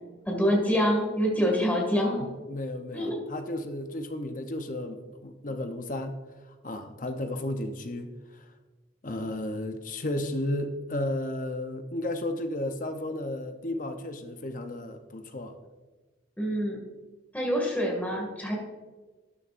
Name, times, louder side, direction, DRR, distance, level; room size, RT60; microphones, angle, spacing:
voice 1, 0.3-2.2 2.9-3.2 16.4-16.8 17.3-18.5, equal, 10° left, -1 dB, 2.0 m, -26 dB
voice 2, 2.5-6.2 6.6-8.4 9.0-15.5, left 1 dB, 40° left, 7 dB, 0.7 m, -33 dB
12.5 x 9.7 x 2.5 m, 1.3 s
head